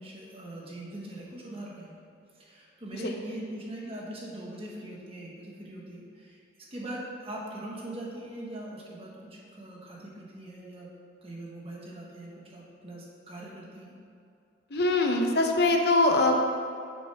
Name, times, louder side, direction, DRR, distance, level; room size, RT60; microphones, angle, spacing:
voice 1, 0.0-2.0 2.3-6.4 6.7-10.9 11.2-13.9, right 1 dB, 35° right, -4 dB, 1.6 m, -41 dB
voice 2, 14.7-16.4, left 2 dB, 60° left, 3 dB, 0.8 m, -23 dB
10.0 x 7.0 x 3.5 m, 2.5 s
head